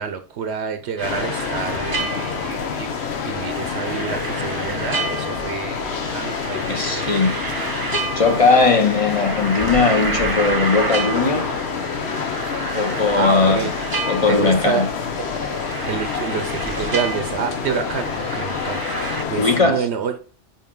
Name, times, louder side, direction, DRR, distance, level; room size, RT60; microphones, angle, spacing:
voice 1, 0.0-3.0 3.2-7.1 13.2-13.8 14.3-14.9 15.2-15.3 15.9-20.1, right 7 dB, 75° right, 0.9 m, -28 dB
sound 1, 1.0-19.6, left 6 dB, 70° left, 1.1 m, -27 dB
sound 2, 1.0-19.2, right 3 dB, 25° right, 0.6 m, -30 dB
voice 2, 6.7-7.3 8.2-11.5 12.7-13.7 14.1-14.9 19.4-19.9, left 4 dB, 35° left, 0.7 m, -18 dB
5.5 x 4.8 x 3.7 m
omnidirectional pair, 1.2 m